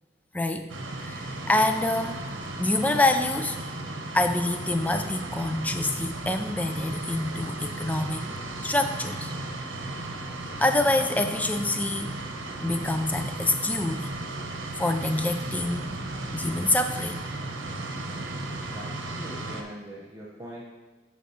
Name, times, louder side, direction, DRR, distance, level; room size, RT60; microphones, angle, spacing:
voice 1, 0.3-0.7 1.0-2.2 2.6-3.6 4.1-8.3 8.6-9.3 10.6-12.2 12.6-14.1 14.8-15.9 16.3-17.2, left 2 dB, 10° left, 7 dB, 0.3 m, -26 dB
sound 1, 0.7-19.6, right 2 dB, 80° right, 0.9 m, -35 dB
voice 2, 18.6-20.7, right 1 dB, 15° right, -6 dB, 0.9 m, -42 dB
14.0 x 4.7 x 2.8 m, 1.3 s
head